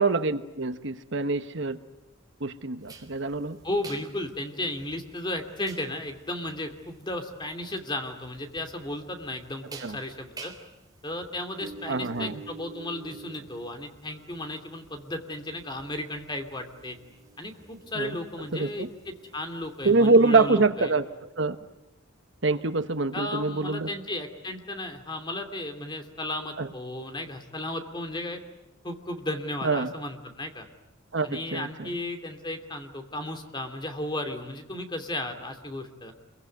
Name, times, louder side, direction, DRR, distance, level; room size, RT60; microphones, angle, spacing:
voice 1, 0.0-1.8 2.4-3.6 9.8-10.0 11.9-12.4 17.9-18.2 18.5-18.9 19.8-21.1 21.4-21.6 22.4-23.9 26.6-26.7 29.6-29.9 31.1-31.9, right 3 dB, 60° right, 10 dB, 1.2 m, -25 dB
sound 1, 2.9-20.5, right 4 dB, 20° right, 3.4 m, -49 dB
voice 2, 3.6-10.5 11.0-17.0 17.4-20.9 23.1-28.4 28.8-30.7 31.2-36.1, left 1 dB, 20° left, 6 dB, 2.7 m, -34 dB
27.5 x 23.0 x 9.4 m, 0.92 s
head